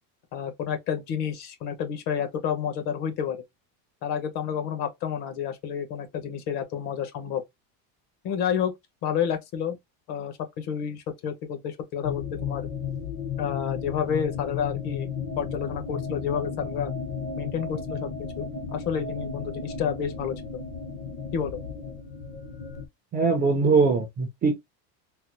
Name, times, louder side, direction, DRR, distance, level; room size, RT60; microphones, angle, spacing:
voice 1, 0.3-3.4 4.0-7.4 8.2-8.7 9.0-9.8 10.1-12.7 13.4-15.1 15.4-16.9 17.4-18.1 18.4-18.5 18.7-20.4 21.3-21.6, left 8 dB, 55° left, 1.2 m, -30 dB
sound 1, 12.0-22.9, left 5 dB, 25° left, 0.6 m, -34 dB
voice 2, 23.1-24.6, right 4 dB, 20° right, 0.4 m, -21 dB
3.8 x 2.0 x 2.9 m
cardioid pair, 165°, 45 cm